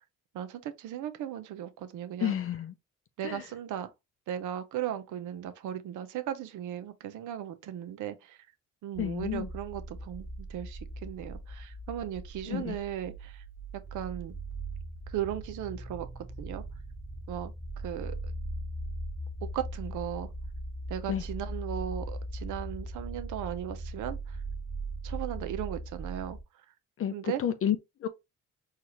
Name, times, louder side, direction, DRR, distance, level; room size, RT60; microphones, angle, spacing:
voice 1, 0.3-2.4 3.2-3.9 4.3-8.4 8.8-13.4 13.9-14.3 15.1-16.1 16.4-16.6 17.3-17.5 17.8-18.3 19.4-20.3 20.9-24.4 25.0-26.4 27.1-27.4, right 11 dB, 80° right, 0.7 m, -37 dB
voice 2, 2.2-2.7 3.2-3.5 9.0-9.5 12.5-12.8 21.1-21.2 27.0-28.1, left 10 dB, 50° left, 0.5 m, -31 dB
sound 1, 8.9-26.4, right 1 dB, 5° right, 1.5 m, -39 dB
4.6 x 2.4 x 2.9 m
cardioid pair, 90°, 30 cm